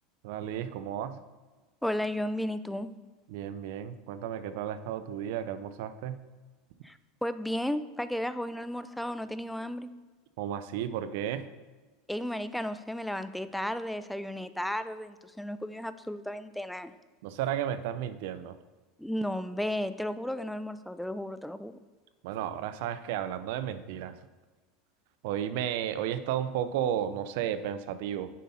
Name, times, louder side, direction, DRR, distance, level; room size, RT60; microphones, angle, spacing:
voice 1, 0.2-1.2 3.3-6.2 10.4-11.5 17.2-18.5 22.2-24.2 25.2-28.3, right 10 dB, 70° right, 12 dB, 0.5 m, -33 dB
voice 2, 1.8-2.9 6.8-9.9 12.1-16.9 19.0-21.8, left 1 dB, ahead, 12 dB, 0.4 m, -34 dB
7.4 x 5.6 x 4.2 m, 1.3 s
supercardioid pair, 120°, 0 cm